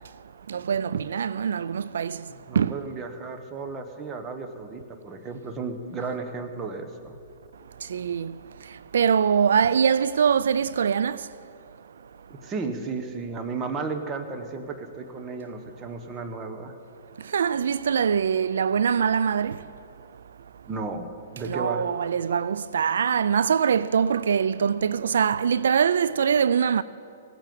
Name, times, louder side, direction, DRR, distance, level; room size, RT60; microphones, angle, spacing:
voice 1, 0.5-2.2 2.6-2.8 7.9-8.3 8.9-11.3 17.3-19.6 21.5-26.8, right 7 dB, 75° right, 0.3 m, -23 dB
voice 2, 2.3-7.2 12.3-16.8 20.7-21.9, right 4 dB, 20° right, 1.3 m, -34 dB
17.0 x 9.0 x 7.8 m
hypercardioid pair, 135°, 0 cm